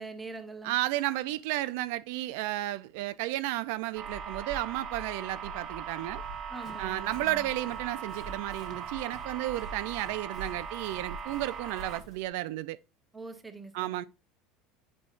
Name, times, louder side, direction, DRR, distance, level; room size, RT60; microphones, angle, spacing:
voice 1, 0.0-0.7 6.5-7.5 13.1-14.0, right 3 dB, 10° right, 0.8 m, -43 dB
voice 2, 0.6-6.2 6.8-12.8 13.7-14.0, right 16 dB, 70° right, 0.3 m, -33 dB
sound 1, 3.9-12.0, right 6 dB, 35° right, 0.9 m, -39 dB
Run, 6.1-12.3, left 2 dB, 35° left, 1.1 m, -53 dB
9.6 x 5.1 x 2.4 m
cardioid pair, 170°, 0 cm